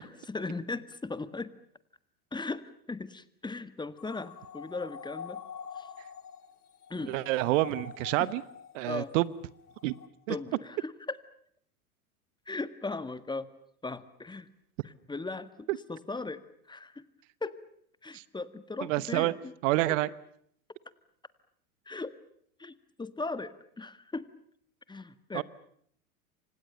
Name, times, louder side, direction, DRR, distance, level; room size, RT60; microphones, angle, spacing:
voice 1, 0.0-1.5 2.3-5.4 5.8-5.9 6.9-7.2 8.2-8.3 8.9-9.1 10.3-11.2 12.5-13.5 13.8-14.5 14.8-17.0 17.4-17.6 18.0-19.5 19.9-20.0 21.9-22.1 22.6-24.3 24.9-25.4, left 3 dB, 10° left, 14 dB, 1.6 m, -38 dB
sound 1, 4.0-9.1 9.5-10.1, left 7 dB, 80° left, 2.2 m, -45 dB
voice 2, 7.1-8.4 8.7-9.3 9.8-9.9 10.3-10.4 15.7-15.8 18.1-18.2 18.8-19.3 19.6-20.1 25.3-25.4, right 18 dB, 55° right, 19 dB, 1.1 m, -28 dB
29.0 x 26.0 x 6.8 m, 0.66 s
hypercardioid pair, 90°, 45 cm